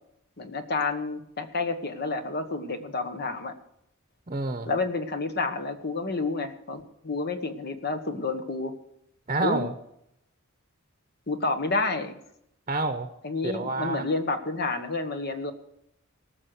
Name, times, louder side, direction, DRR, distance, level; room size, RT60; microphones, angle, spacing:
voice 1, 0.4-3.5 4.6-8.7 9.4-9.6 11.3-12.1 13.2-15.5, left 3 dB, 50° left, 8 dB, 1.3 m, -29 dB
voice 2, 4.3-4.7 9.3-9.7 12.7-13.1 13.4-14.1, right 2 dB, 35° right, 8 dB, 0.9 m, -28 dB
18.5 x 6.4 x 7.9 m, 0.76 s
head